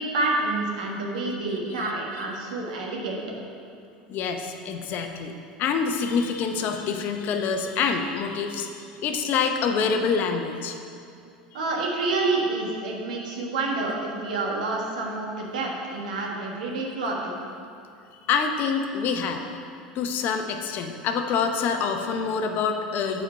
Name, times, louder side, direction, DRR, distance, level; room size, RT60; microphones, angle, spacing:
voice 1, 0.0-3.2 11.5-17.4, right 3 dB, 75° right, -1 dB, 1.4 m, -28 dB
voice 2, 4.1-10.7 18.3-19.5 19.9-23.2, left 5 dB, 50° left, 5 dB, 0.7 m, -26 dB
7.9 x 4.4 x 5.6 m, 2.6 s
hypercardioid pair, 80°, 4 cm